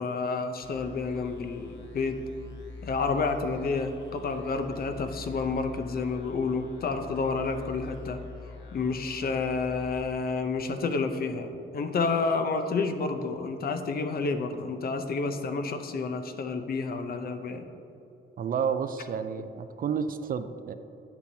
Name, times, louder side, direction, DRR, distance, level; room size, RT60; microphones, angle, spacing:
voice 1, 0.0-2.2 2.8-8.2 8.7-17.7, left 4 dB, 50° left, 7 dB, 0.7 m, -30 dB
sound 1, 0.6-10.9, left 3 dB, 70° left, 1.0 m, -45 dB
voice 2, 18.4-20.7, right 7 dB, 45° right, 10 dB, 0.4 m, -30 dB
8.9 x 7.0 x 2.8 m, 2.8 s
cardioid pair, 90°, 20 cm